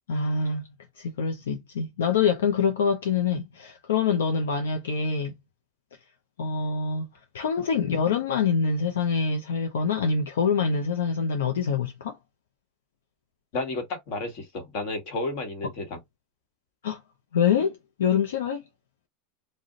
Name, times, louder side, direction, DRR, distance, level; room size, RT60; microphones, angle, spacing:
voice 1, 0.1-0.7 1.0-5.3 6.4-7.1 7.3-12.2 16.8-17.0 17.3-17.7 18.0-18.6, left 6 dB, 85° left, 0.5 m, -25 dB
voice 2, 13.5-16.0, left 2 dB, 60° left, 1.3 m, -32 dB
2.5 x 2.1 x 3.7 m
hypercardioid pair, 105°, 0 cm